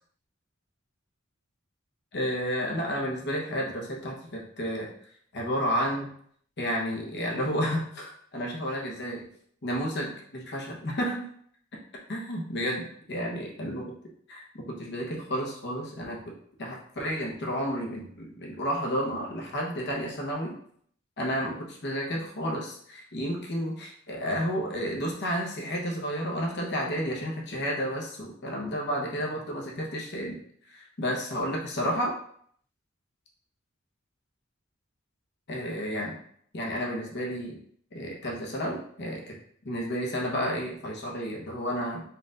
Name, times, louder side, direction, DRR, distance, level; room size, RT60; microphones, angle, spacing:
voice 1, 2.1-4.9 5.3-6.1 6.6-9.2 9.6-11.3 12.1-13.8 14.3-20.5 21.2-30.4 30.7-32.1 35.5-36.2 36.5-37.6 37.9-39.4 39.6-42.0, equal, 55° left, -2 dB, 1.0 m, -31 dB
4.4 x 2.5 x 3.8 m, 0.62 s
head